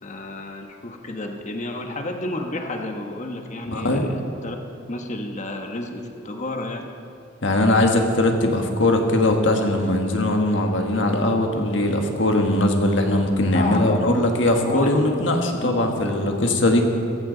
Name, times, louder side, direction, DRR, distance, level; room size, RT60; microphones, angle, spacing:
voice 1, 0.0-4.6 4.9-6.8 13.4-15.1 15.6-16.4, left 2 dB, 40° left, 4 dB, 1.2 m, -31 dB
voice 2, 3.7-4.1 7.4-16.8, left 1 dB, 65° left, 3 dB, 1.5 m, -20 dB
16.5 x 15.0 x 4.0 m, 2.7 s
head